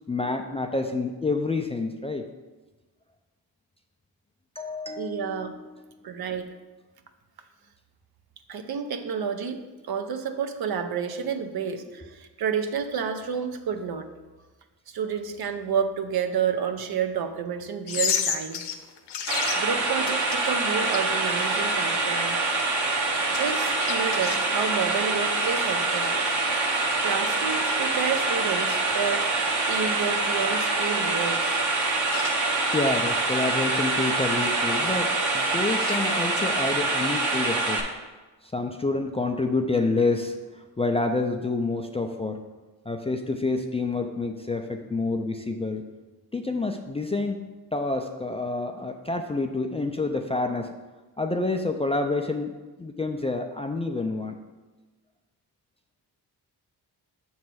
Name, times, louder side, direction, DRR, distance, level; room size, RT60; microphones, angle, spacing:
voice 1, 0.1-2.3 4.6-5.6 32.7-37.9 38.4-42.4 42.9-45.8 46.3-47.4 47.7-50.7 51.2-52.5 52.8-54.4, left 3 dB, 15° left, 4 dB, 0.3 m, -28 dB
voice 2, 5.0-5.5 6.0-6.5 8.5-14.1 14.9-18.6 19.6-22.4 23.3-26.1 27.0-29.3 29.7-31.6, right 6 dB, 65° right, 7 dB, 0.7 m, -30 dB
sound 1, 17.9-21.6 22.1-22.2 22.6-22.7 23.3-24.4 25.3-26.6 27.2-27.4 27.9-28.0 28.4-28.5 28.7-28.8 29.3-29.6 29.9-30.0 30.6-30.7 31.7-31.8 32.0-32.4 32.9-33.0 33.7-34.3 34.8-35.2 35.6-36.5, left 7 dB, 90° left, 0.7 m, -33 dB
sound 2, 19.3-37.8, right 3 dB, 45° right, 1.0 m, -25 dB
6.8 x 3.2 x 6.0 m, 1.2 s
cardioid pair, 105°, 40 cm